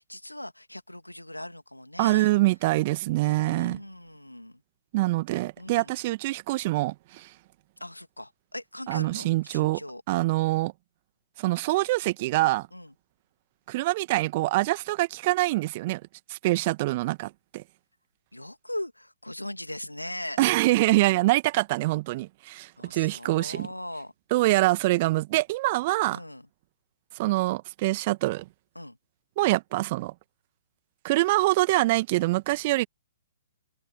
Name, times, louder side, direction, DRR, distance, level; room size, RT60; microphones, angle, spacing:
voice 1, 0.0-2.3 3.2-4.6 5.6-5.9 7.8-10.0 12.7-12.9 18.3-20.5 22.8-24.1 26.1-26.5 28.7-29.0, left 1 dB, 90° left, 2.6 m, -39 dB
voice 2, 2.0-3.8 4.9-7.3 8.9-9.8 10.1-10.7 11.4-12.7 13.7-16.0 16.3-17.6 20.4-23.7 24.3-26.2 27.1-28.5 29.4-30.1 31.0-32.9, right 19 dB, 35° right, 1.6 m, -25 dB
figure-of-eight pair, 120°, 0 cm